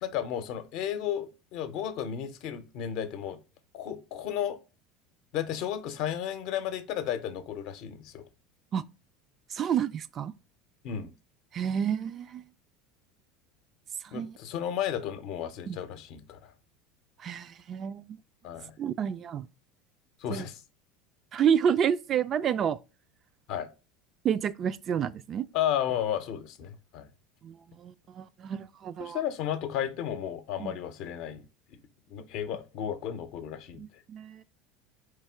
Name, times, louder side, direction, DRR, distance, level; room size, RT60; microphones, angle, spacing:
voice 1, 0.0-3.4 3.7-4.6 5.3-8.2 10.8-11.1 14.1-16.5 18.4-18.7 20.2-20.6 23.5-23.7 25.5-27.1 29.0-31.4 32.1-33.8, left 10 dB, 60° left, 0.6 m, -33 dB
voice 2, 9.5-10.3 11.5-12.4 14.0-14.4 15.7-15.8 17.2-18.2 18.8-19.5 20.3-20.4 21.3-22.8 24.2-25.5 27.4-29.2 30.6-30.7 33.8-34.4, right 8 dB, 40° right, 0.3 m, -29 dB
4.2 x 3.3 x 3.4 m
hypercardioid pair, 75°, 0 cm